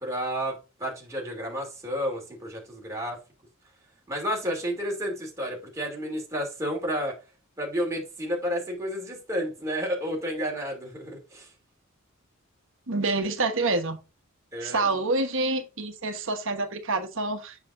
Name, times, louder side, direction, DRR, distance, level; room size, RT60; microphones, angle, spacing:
voice 1, 0.0-3.2 4.1-7.1 7.6-11.5 14.5-14.8, equal, 15° right, 2.7 m, -31 dB
voice 2, 12.9-14.0 14.6-17.6, right 3 dB, 65° right, 1.2 m, -27 dB
7.5 x 6.4 x 2.6 m
head